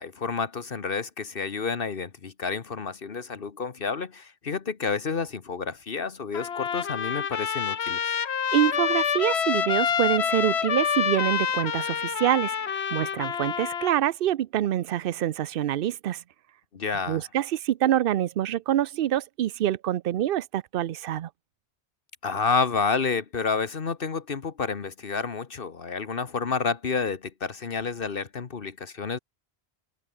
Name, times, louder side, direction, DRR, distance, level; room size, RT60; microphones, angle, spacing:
voice 1, 0.0-8.1 16.7-17.3 22.2-29.2, left 5 dB, 60° left, 1.4 m, -30 dB
Trumpet, 6.3-13.9, left 7 dB, 85° left, 1.4 m, -27 dB
voice 2, 8.5-16.2 17.1-21.3, right 12 dB, 65° right, 0.7 m, -26 dB
omnidirectional pair, 1.1 m